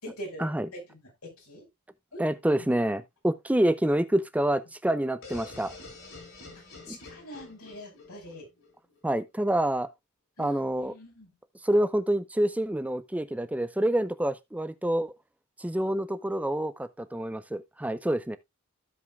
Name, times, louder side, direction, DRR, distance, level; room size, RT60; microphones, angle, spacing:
voice 1, 0.0-0.8 1.2-1.6 2.1-2.2 2.6-2.7 6.8-8.5 10.4-11.3, equal, 85° left, 5.3 m, -43 dB
voice 2, 2.2-5.7 6.9-7.0 9.0-9.9 10.4-11.0 11.6-15.1 15.6-18.4, right 1 dB, 5° right, 0.5 m, -27 dB
sound 1, 5.2-9.0, left 3 dB, 60° left, 4.6 m, -47 dB
15.5 x 5.4 x 2.4 m
head